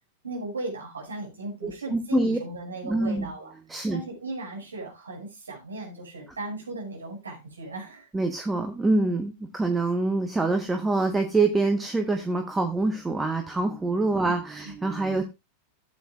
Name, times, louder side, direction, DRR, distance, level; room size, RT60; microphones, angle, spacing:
voice 1, 0.2-3.5 3.9-8.1 14.2-14.3 14.6-14.7, right 2 dB, 75° right, 0 dB, 5.9 m, -36 dB
voice 2, 1.6-2.4 2.8-3.3 3.7-4.0 8.1-15.2, right 3 dB, 10° right, 5 dB, 1.2 m, -25 dB
15.0 x 8.6 x 2.4 m, 0.25 s
figure-of-eight pair, 90°, 0 cm